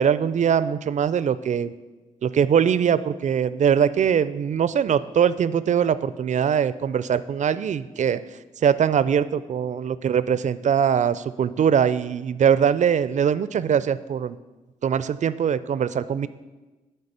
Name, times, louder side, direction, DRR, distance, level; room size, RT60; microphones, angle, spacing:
voice 1, 0.0-1.7 2.2-8.2 8.6-14.4 14.8-16.3, right 8 dB, 55° right, 15 dB, 0.4 m, -22 dB
8.9 x 3.2 x 6.6 m, 1.2 s
supercardioid pair, 50°, 15 cm